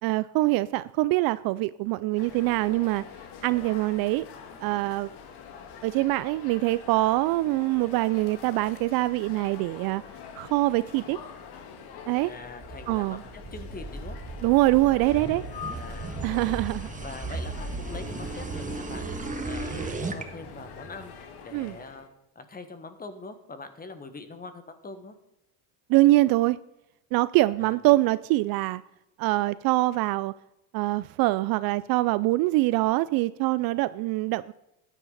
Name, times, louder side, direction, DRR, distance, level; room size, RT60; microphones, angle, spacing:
voice 1, 0.0-3.0 3.4-4.3 4.6-5.1 5.8-10.0 10.4-11.2 12.1-12.3 12.9-13.2 14.4-15.4 16.2-16.9 21.5-21.7 25.9-26.6 27.1-28.8 29.2-30.3 30.7-34.5, right 19 dB, 50° right, 0.4 m, -24 dB
sound 1, 2.2-22.1, left 6 dB, 60° left, 1.9 m, -45 dB
voice 2, 12.1-13.2 13.5-14.2 15.5-16.6 17.0-19.0 19.4-21.1 21.4-22.1 22.3-25.1 27.6-27.7, left 3 dB, 20° left, 1.6 m, -43 dB
sound 2, 12.2-20.2, right 3 dB, 15° right, 1.5 m, -36 dB
sound 3, 13.2-21.2, right 4 dB, 90° right, 2.1 m, -50 dB
13.5 x 10.0 x 4.1 m
supercardioid pair, 100°, 46 cm